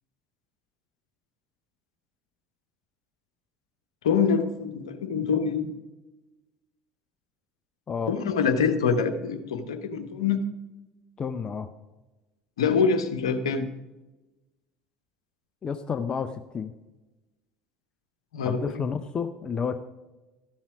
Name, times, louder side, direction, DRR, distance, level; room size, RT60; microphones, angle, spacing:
voice 1, 4.0-5.7 8.1-10.4 12.6-13.7 18.3-18.7, left 6 dB, 75° left, 7 dB, 1.0 m, -25 dB
voice 2, 11.2-11.7 15.6-16.7 18.4-19.8, left 6 dB, 30° left, 9 dB, 0.7 m, -30 dB
13.5 x 7.3 x 4.9 m, 1.1 s
figure-of-eight pair, 70°, 3 cm